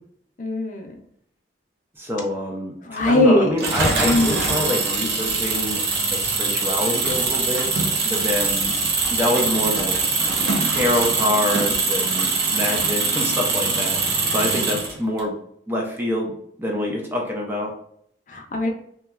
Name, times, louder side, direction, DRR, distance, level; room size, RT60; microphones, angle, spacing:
voice 1, 0.4-0.9 2.9-3.5 4.0-4.5 18.3-18.7, left 1 dB, 45° left, 2 dB, 0.5 m, -20 dB
voice 2, 2.0-2.8 3.1-5.8 6.1-7.7 8.0-8.7 9.1-10.0 10.7-14.0 14.3-15.3 15.7-17.7, left 1 dB, 10° right, 0 dB, 0.5 m, -26 dB
Engine, 3.6-15.2, right 3 dB, 65° right, 0.6 m, -23 dB
3.0 x 2.2 x 2.3 m, 0.66 s
head